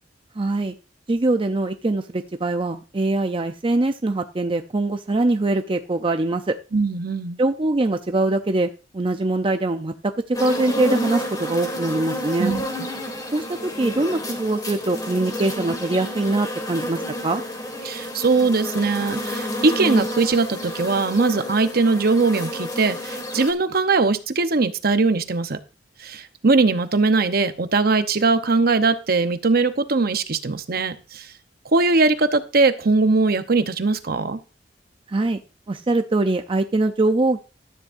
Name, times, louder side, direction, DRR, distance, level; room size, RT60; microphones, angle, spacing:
voice 1, 0.4-0.7 1.1-6.6 7.4-12.5 13.3-17.4 35.1-35.4 35.7-37.4, right 2 dB, 30° right, 7 dB, 0.5 m, -23 dB
voice 2, 6.7-7.4 12.4-12.9 17.8-25.6 26.0-31.3 31.7-34.4, right 3 dB, 55° right, 10 dB, 0.9 m, -20 dB
sound 1, 10.3-23.5, left 1 dB, 20° left, 2.9 m, -30 dB
13.0 x 11.0 x 2.6 m, 0.33 s
head